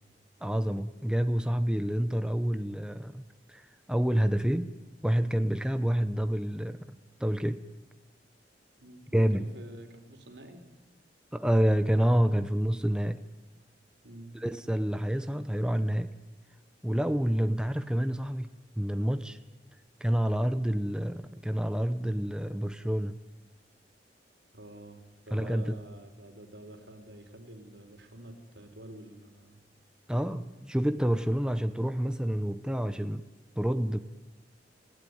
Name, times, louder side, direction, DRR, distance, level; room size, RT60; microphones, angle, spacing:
voice 1, 0.4-3.6 3.9-4.8 5.0-7.6 9.1-9.5 11.3-13.2 14.3-16.2 16.8-19.4 20.0-23.2 25.3-25.8 30.1-33.2 33.6-34.0, equal, 5° right, 10 dB, 0.8 m, -28 dB
voice 2, 8.8-10.6 14.0-14.4 24.5-25.0 25.3-29.6, right 1 dB, 80° right, 5 dB, 3.7 m, -48 dB
29.5 x 16.5 x 9.3 m, 1.1 s
head